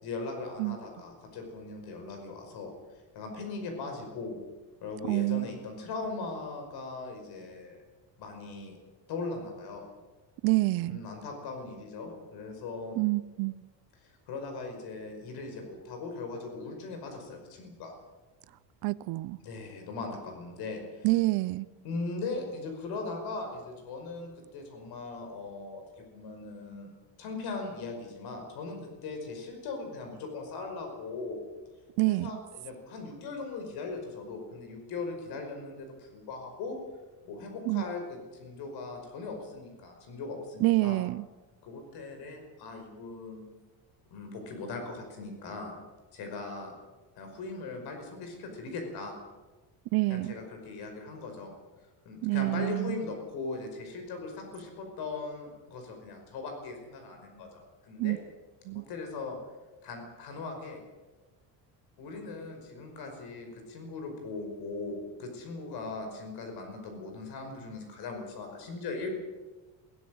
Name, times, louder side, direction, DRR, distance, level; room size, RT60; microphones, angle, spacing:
voice 1, 0.0-2.7 3.2-4.4 4.8-7.8 8.2-8.7 9.1-9.9 10.8-13.0 14.0-17.9 19.4-21.1 21.8-26.9 27.2-31.4 32.1-36.8 37.2-41.0 41.6-43.4 44.1-45.7 46.1-46.7 47.2-49.1 50.1-51.5 52.1-58.2 58.7-59.4 59.8-60.8 62.0-69.1, left 3 dB, 60° left, 4 dB, 5.5 m, -39 dB
voice 2, 5.1-5.5 10.4-11.0 13.0-13.5 18.8-19.4 21.0-21.7 32.0-32.3 37.7-37.8 40.6-41.2 49.9-50.3 52.2-53.0 58.0-58.2 58.7-58.9, right 21 dB, 60° right, 17 dB, 0.6 m, -27 dB
22.0 x 17.0 x 7.8 m, 1.2 s
cardioid pair, 170°, 43 cm